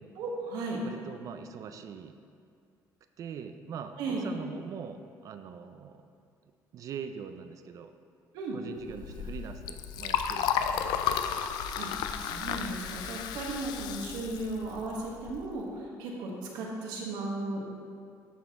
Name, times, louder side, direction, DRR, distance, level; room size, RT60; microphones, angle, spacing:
voice 1, 0.2-0.8 4.0-4.2 8.3-8.6 11.8-11.9 12.2-17.6, right 2 dB, 85° right, -2 dB, 1.3 m, -35 dB
voice 2, 0.8-2.1 3.2-6.1 6.7-7.9 8.5-11.1, right 7 dB, 55° right, 8 dB, 0.4 m, -42 dB
Liquid, 8.8-15.5, left 8 dB, 80° left, 0.4 m, -33 dB
11.5 x 4.2 x 3.6 m, 2.3 s
cardioid pair, 105°, 7 cm